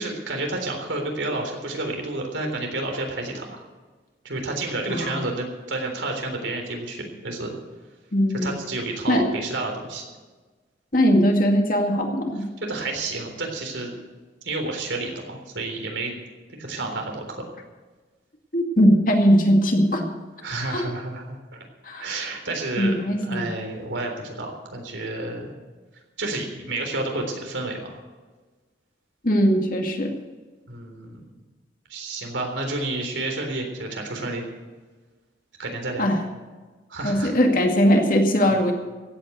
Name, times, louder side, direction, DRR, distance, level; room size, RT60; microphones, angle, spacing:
voice 1, 0.0-3.6 4.2-7.5 8.3-10.0 12.6-14.0 14.4-16.1 16.6-17.4 20.4-21.4 22.0-25.5 26.2-28.0 30.7-31.3 31.9-34.5 35.6-36.1 36.9-37.3 38.5-38.6, right 2 dB, 90° right, 3 dB, 3.7 m, -30 dB
voice 2, 4.9-5.3 8.1-8.5 9.1-9.3 10.9-12.5 18.5-20.1 20.7-20.9 21.9-22.1 22.8-23.5 29.2-30.1 36.0-36.2 37.0-38.7, equal, 45° left, 2 dB, 2.2 m, -20 dB
16.0 x 8.8 x 8.1 m, 1.3 s
head